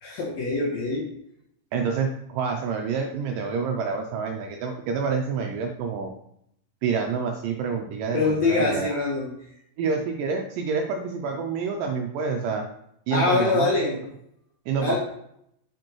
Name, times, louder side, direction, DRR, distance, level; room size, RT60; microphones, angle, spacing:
voice 1, 0.0-1.0 8.1-9.3 13.1-14.0 14.8-15.0, left 3 dB, 65° left, -4 dB, 1.8 m, -24 dB
voice 2, 1.7-6.1 6.8-9.0 9.8-12.7 13.1-14.0 14.7-15.0, right 5 dB, 80° right, 3 dB, 2.0 m, -28 dB
7.5 x 5.2 x 3.0 m, 0.74 s
omnidirectional pair, 4.4 m